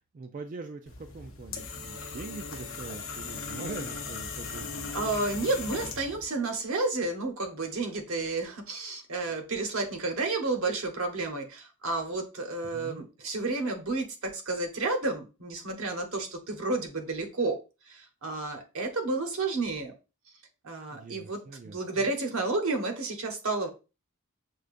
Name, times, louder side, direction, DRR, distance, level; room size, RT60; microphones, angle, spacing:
voice 1, 0.1-4.9 12.6-13.1 20.9-22.1, right 3 dB, 35° right, 5 dB, 0.3 m, -43 dB
sound 1, 0.9-6.2, left 4 dB, 65° left, 0.7 m, -38 dB
voice 2, 4.9-17.6 17.9-19.9 20.6-23.7, right 3 dB, 75° right, 4 dB, 0.9 m, -31 dB
6.3 x 2.3 x 2.5 m, 0.31 s
head